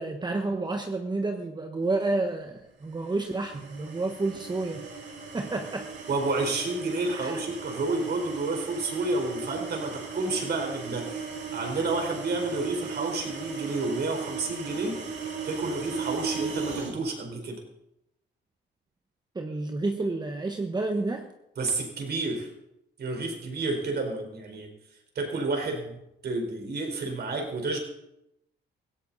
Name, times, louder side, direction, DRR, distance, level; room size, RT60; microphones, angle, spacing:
voice 1, 0.0-4.9 5.3-5.9 7.1-7.4 19.3-21.3, right 2 dB, 20° right, 4 dB, 1.2 m, -30 dB
sound 1, 3.0-17.0, right 5 dB, 70° right, 6.4 m, -37 dB
voice 2, 6.1-15.0 15.5-17.6 21.6-22.5 23.0-24.7 25.1-27.8, right 3 dB, 55° right, 3 dB, 4.3 m, -30 dB
17.0 x 16.0 x 4.1 m, 0.83 s
cardioid pair, 90°, 20 cm